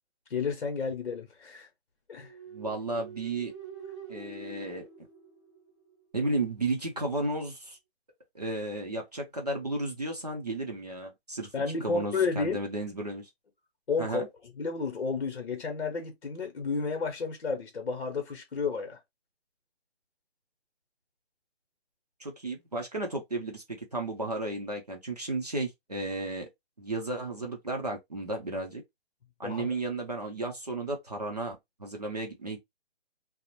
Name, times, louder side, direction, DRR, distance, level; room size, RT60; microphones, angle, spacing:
voice 1, 0.3-1.7 2.1-2.3 11.5-12.6 13.9-14.2 14.6-19.0 29.4-29.7, left 4 dB, 60° left, 0.7 m, -31 dB
sound 1, 2.2-6.0, right 5 dB, 25° left, 0.6 m, -46 dB
voice 2, 2.5-3.5 4.1-4.8 6.1-7.8 8.3-11.5 11.8-13.3 14.0-14.3 22.2-26.5 26.8-28.8 29.4-32.6, right 2 dB, 40° right, 0.5 m, -33 dB
2.5 x 2.0 x 2.8 m
hypercardioid pair, 180°, 32 cm